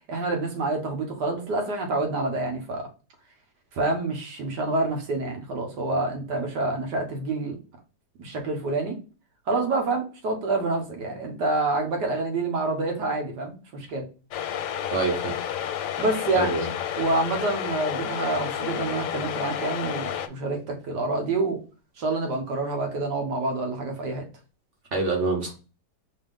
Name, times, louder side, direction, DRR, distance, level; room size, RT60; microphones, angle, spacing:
voice 1, 0.1-2.9 3.7-7.6 8.2-9.0 9.5-14.1 16.0-16.5 17.0-21.6 22.0-24.2, right 2 dB, 75° right, 1.8 m, -27 dB
sound 1, 14.3-20.3, left 9 dB, 75° left, 1.1 m, -31 dB
voice 2, 14.9-15.4 16.4-16.7 24.9-25.5, right 3 dB, 50° right, 1.2 m, -25 dB
5.1 x 2.8 x 3.6 m
omnidirectional pair, 1.9 m